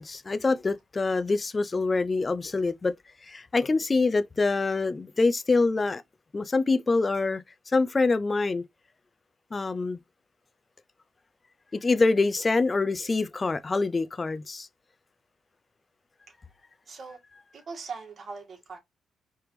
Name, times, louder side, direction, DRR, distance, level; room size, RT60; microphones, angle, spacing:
voice 1, 0.0-2.9 3.2-6.0 6.3-8.6 9.5-10.0 11.7-14.7, left 3 dB, 25° left, 0.5 m, -25 dB
voice 2, 16.9-17.2 17.5-18.8, right 4 dB, 45° right, 1.8 m, -40 dB
4.8 x 3.4 x 3.1 m
cardioid pair, 90°, 0 cm